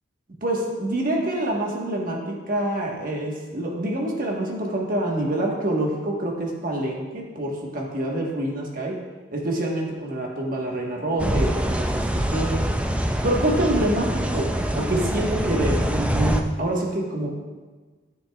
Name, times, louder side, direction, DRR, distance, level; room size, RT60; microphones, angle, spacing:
voice 1, 0.4-9.0 9.3-12.6 13.2-14.5 14.7-17.3, right 1 dB, 45° right, -1 dB, 1.4 m, -26 dB
sound 1, 11.2-16.4, right 1 dB, 5° right, 0.4 m, -24 dB
12.0 x 6.8 x 2.4 m, 1.4 s
head